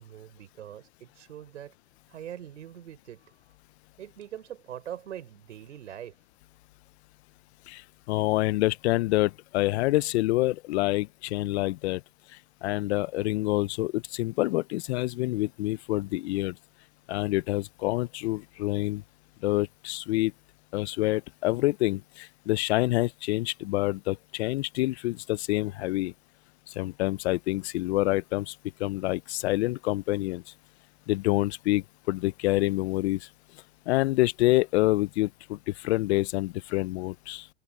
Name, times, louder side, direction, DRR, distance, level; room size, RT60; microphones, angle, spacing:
voice 1, 0.0-1.7 2.1-3.2 4.0-6.1, right 10 dB, 85° right, 6.4 m, -42 dB
voice 2, 7.7-12.0 12.6-16.6 17.1-19.0 19.4-20.3 20.7-26.1 26.7-30.4 31.1-33.3 33.9-37.5, left 18 dB, 65° left, 0.7 m, -27 dB
open air
hypercardioid pair, 115°, 35 cm